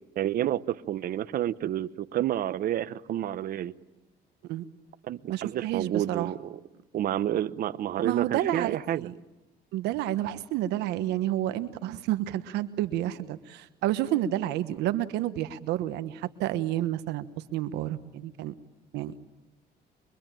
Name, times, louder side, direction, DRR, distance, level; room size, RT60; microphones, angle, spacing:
voice 1, 0.2-3.7 5.0-6.5 6.9-9.1, right 12 dB, 60° right, 1.0 m, -29 dB
voice 2, 5.3-6.3 8.0-9.1 9.7-17.3 17.5-18.5 18.9-19.2, right 13 dB, 85° right, 1.2 m, -30 dB
24.0 x 24.0 x 9.1 m
cardioid pair, 110°, 17 cm